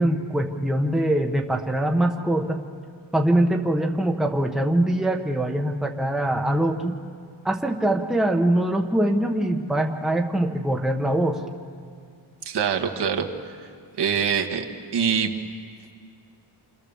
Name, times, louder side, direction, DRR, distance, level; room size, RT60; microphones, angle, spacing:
voice 1, 0.0-2.6 3.1-7.0 7.4-11.4, right 1 dB, ahead, 2 dB, 1.1 m, -23 dB
voice 2, 12.5-13.3 14.0-14.6 14.9-15.3, right 7 dB, 60° right, 4 dB, 2.1 m, -23 dB
29.0 x 28.0 x 7.2 m, 2.2 s
wide cardioid pair, 175°, 46 cm